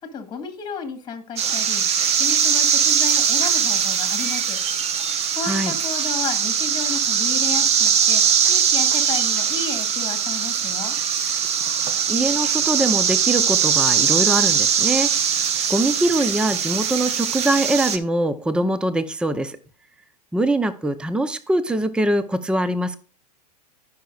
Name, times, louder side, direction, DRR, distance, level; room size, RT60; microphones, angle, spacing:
voice 1, 0.1-1.8 2.2-4.6 5.4-11.0, left 5 dB, 20° left, 7 dB, 1.9 m, -32 dB
sound 1, 1.4-18.0, right 7 dB, 30° right, 0.9 m, -21 dB
voice 2, 12.1-19.6 20.3-23.0, right 1 dB, 5° right, 13 dB, 0.6 m, -23 dB
15.0 x 5.8 x 2.4 m, 0.38 s
hypercardioid pair, 110°, 21 cm